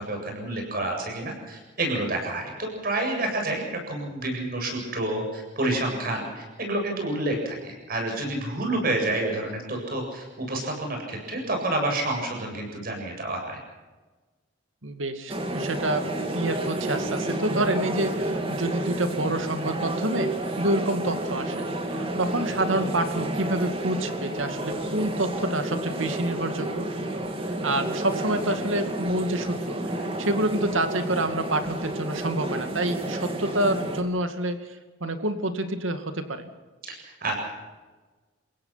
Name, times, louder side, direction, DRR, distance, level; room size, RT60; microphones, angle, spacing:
voice 1, 0.0-13.6 36.8-37.3, right 2 dB, 50° right, 2 dB, 7.6 m, -29 dB
voice 2, 14.8-16.0 16.3-20.3 20.6-21.7 21.9-26.9 27.6-34.6 35.0-36.5, right 1 dB, 85° right, 8 dB, 2.3 m, -27 dB
sound 1, 15.3-34.0, right 1 dB, 30° right, 2.4 m, -30 dB
30.0 x 16.5 x 5.9 m, 1.3 s
head